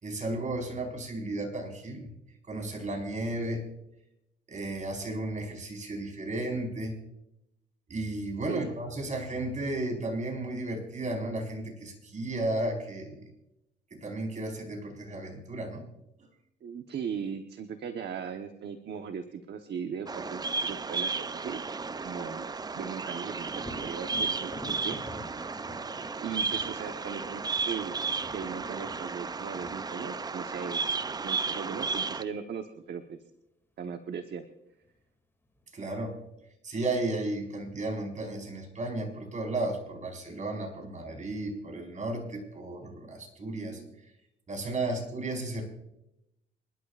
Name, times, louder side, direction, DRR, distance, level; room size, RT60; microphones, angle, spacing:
voice 1, 0.0-2.1 2.5-3.6 4.5-7.0 7.9-13.3 13.9-15.8 35.7-36.1 36.6-43.8 44.5-45.6, right 2 dB, 40° right, 1 dB, 4.6 m, -34 dB
voice 2, 16.6-21.6 22.0-22.5 22.7-25.0 26.2-27.9 28.3-30.8 31.2-33.2 33.8-34.4 43.4-43.9, right 7 dB, 60° right, 6 dB, 1.1 m, -38 dB
Bird vocalization bird call bird song, 20.1-32.2, right 4 dB, 20° right, 0.4 m, -33 dB
Thunder, 23.6-31.2 34.9-35.0 35.5-36.3, left 2 dB, 10° left, 2.4 m, -48 dB
26.5 x 12.0 x 2.5 m, 0.87 s
cardioid pair, 90°, 20 cm